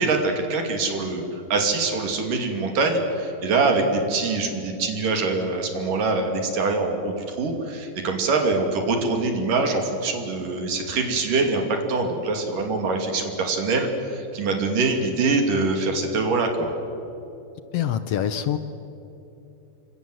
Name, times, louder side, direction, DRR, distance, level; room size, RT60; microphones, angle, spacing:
voice 1, 0.0-11.6 11.9-16.7, right 3 dB, 75° right, 4 dB, 4.4 m, -24 dB
voice 2, 17.7-18.6, left 10 dB, 70° left, 11 dB, 1.5 m, -24 dB
29.5 x 23.5 x 8.0 m, 2.9 s
omnidirectional pair, 3.8 m